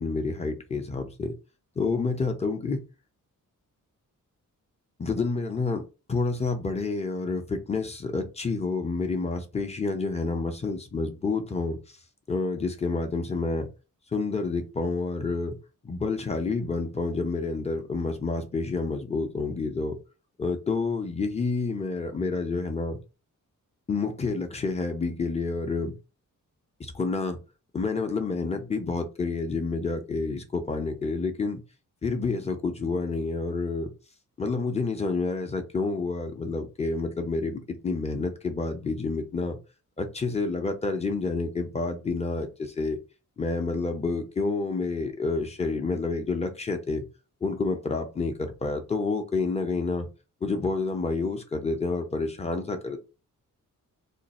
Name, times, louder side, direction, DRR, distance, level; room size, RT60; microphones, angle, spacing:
voice 1, 0.0-1.3 1.8-2.8 5.0-5.8 6.1-11.8 12.3-13.7 14.1-15.6 15.8-20.0 20.4-23.0 23.9-26.0 26.8-27.4 27.7-31.6 32.0-33.9 34.4-39.6 40.0-43.0 43.4-47.1 47.4-50.1 50.4-53.0, left 3 dB, 20° left, 0.5 m, -29 dB
2.5 x 2.3 x 4.0 m
wide cardioid pair, 140°, 33 cm